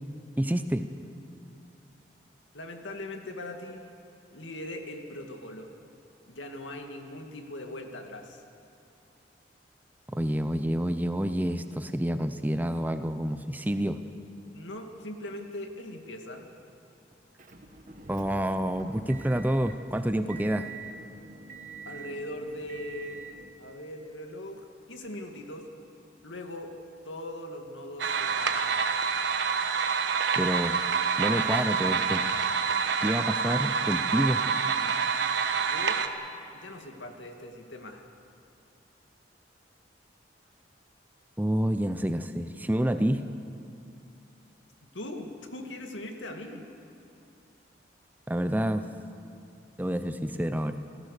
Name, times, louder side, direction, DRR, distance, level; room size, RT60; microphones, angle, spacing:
voice 1, 0.4-0.9 10.1-14.0 18.1-20.7 30.4-30.8 31.2-32.3 33.0-34.4 41.4-43.3 48.3-48.9 49.8-50.8, equal, 10° right, 9 dB, 0.6 m, -28 dB
voice 2, 2.5-3.8 4.3-5.7 6.3-8.4 14.5-16.5 21.9-23.2 23.6-25.7 26.2-26.7 27.0-28.8 35.6-36.0 36.5-38.0 44.9-46.7, left 1 dB, 80° left, 4 dB, 2.3 m, -40 dB
Motor vehicle (road) / Engine, 17.4-23.5, right 4 dB, 40° right, 1.6 m, -45 dB
sound 1, 28.0-36.1, right 6 dB, 70° right, 1.2 m, -27 dB
29.0 x 16.5 x 6.7 m, 2.7 s
head